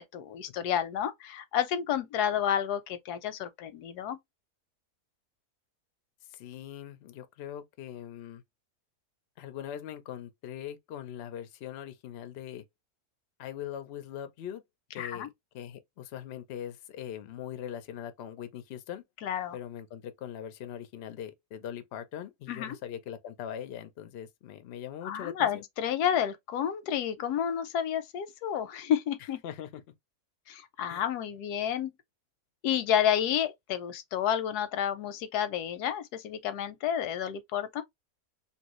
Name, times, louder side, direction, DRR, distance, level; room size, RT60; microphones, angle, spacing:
voice 1, 0.0-4.2 15.0-15.3 19.2-19.6 22.5-22.8 25.0-29.4 30.5-31.9 32.6-37.8, left 9 dB, 85° left, 1.1 m, -30 dB
voice 2, 6.3-8.4 9.4-12.6 13.4-14.6 14.9-19.0 19.5-25.6 29.4-29.8 30.9-31.0, left 10 dB, 65° left, 0.6 m, -41 dB
2.9 x 2.7 x 2.9 m
omnidirectional pair, 1.7 m